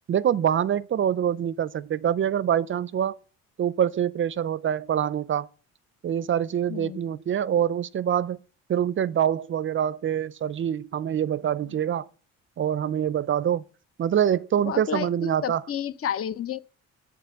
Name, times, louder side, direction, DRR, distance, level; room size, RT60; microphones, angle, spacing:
voice 1, 0.1-3.2 3.6-5.5 6.0-8.4 8.7-12.1 12.6-13.6 14.0-15.6, right 9 dB, 40° right, 0.5 m, -25 dB
voice 2, 14.6-16.6, left 9 dB, 45° left, 0.8 m, -31 dB
7.8 x 7.4 x 7.0 m
cardioid pair, 85°, 31 cm